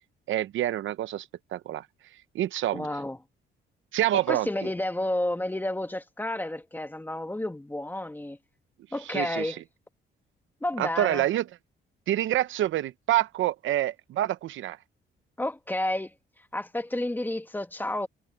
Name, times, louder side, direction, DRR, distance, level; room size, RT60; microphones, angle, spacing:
voice 1, 0.3-1.3 1.5-1.9 2.3-2.9 3.9-4.5 9.1-9.6 10.8-11.5 12.1-14.8, right 13 dB, 75° right, 0.9 m, -27 dB
voice 2, 2.7-3.2 4.1-8.4 8.9-9.6 10.6-11.3 15.4-16.1 16.5-18.1, left 1 dB, 10° left, 1.8 m, -31 dB
cardioid pair, 90°, 20 cm